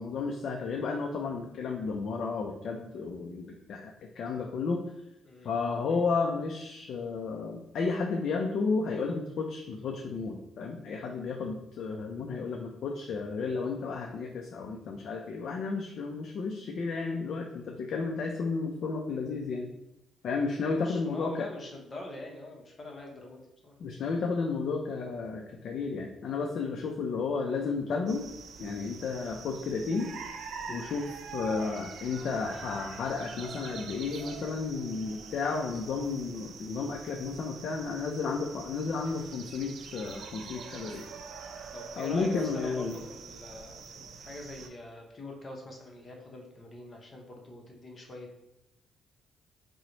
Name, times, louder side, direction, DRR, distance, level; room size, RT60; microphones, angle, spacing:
voice 1, 0.0-4.9 5.4-19.7 20.2-21.5 23.8-28.3 28.6-30.1 30.7-31.1 31.3-41.0 42.0-43.0, left 4 dB, 65° left, 2 dB, 0.3 m, -32 dB
voice 2, 20.6-23.7 41.7-48.3, left 2 dB, 35° left, 0 dB, 0.7 m, -44 dB
sound 1, 28.1-44.7, right 5 dB, 70° right, 0.3 m, -45 dB
2.9 x 2.0 x 3.8 m, 0.89 s
cardioid pair, 90°, 0 cm